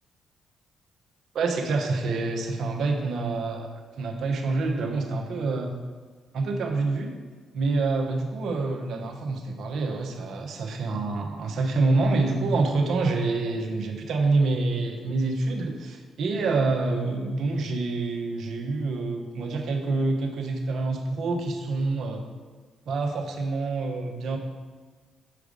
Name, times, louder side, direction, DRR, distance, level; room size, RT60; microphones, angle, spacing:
voice 1, 1.3-5.7 6.3-7.1 7.5-22.2 22.9-24.4, right 3 dB, 65° right, 2 dB, 1.1 m, -27 dB
7.7 x 4.8 x 5.2 m, 1.4 s
hypercardioid pair, 45°, 0 cm